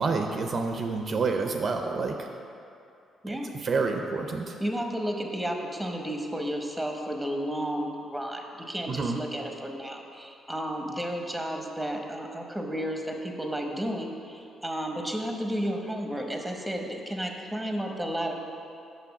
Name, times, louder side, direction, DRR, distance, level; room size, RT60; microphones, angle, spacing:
voice 1, 0.0-2.3 3.3-4.6 8.9-9.2, right 4 dB, 45° right, 4 dB, 0.5 m, -28 dB
voice 2, 4.6-18.3, equal, 5° right, 2 dB, 1.0 m, -32 dB
6.0 x 5.6 x 7.0 m, 2.6 s
cardioid pair, 90°, 0 cm